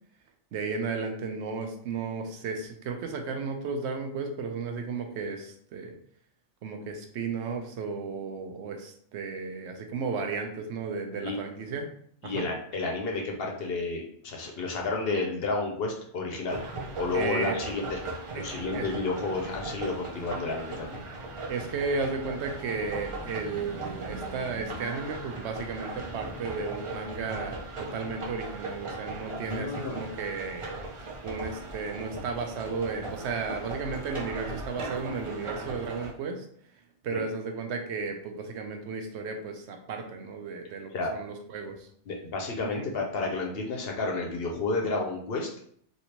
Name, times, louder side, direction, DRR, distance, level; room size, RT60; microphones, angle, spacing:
voice 1, 0.5-6.0 6.6-11.9 12.2-12.5 17.1-17.6 18.3-18.9 21.5-30.7 31.2-36.4 37.0-41.9 42.8-42.9, right 4 dB, 70° right, 4 dB, 0.9 m, -34 dB
voice 2, 12.2-16.6 17.0-18.0 18.3-21.0 29.5-30.0 37.1-37.2 40.9-41.1 42.1-45.5, left 3 dB, 60° left, 1 dB, 0.8 m, -31 dB
sound 1, 16.5-36.1, right 3 dB, 40° right, 0.4 m, -39 dB
Car passing by / Traffic noise roadway noise / Engine, 20.5-27.8, equal, 10° left, 1.0 m, -47 dB
3.2 x 2.7 x 2.9 m, 0.63 s
omnidirectional pair, 1.2 m